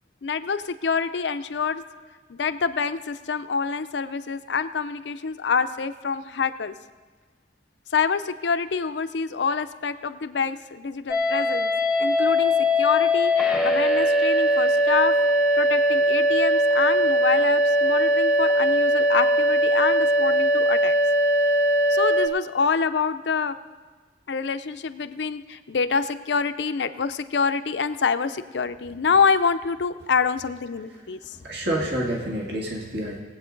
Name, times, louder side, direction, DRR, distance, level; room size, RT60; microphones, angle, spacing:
voice 1, 0.2-1.8 2.3-6.7 7.9-11.7 12.0-13.3 13.6-15.2 15.6-20.9 21.9-23.6 24.3-31.4, left 5 dB, 75° left, 11 dB, 0.5 m, -26 dB
sound 1, 11.1-22.3, equal, 5° right, 0.9 m, -20 dB
voice 2, 31.4-33.2, right 1 dB, 65° right, -2 dB, 1.9 m, -28 dB
19.5 x 8.5 x 3.9 m, 1.4 s
head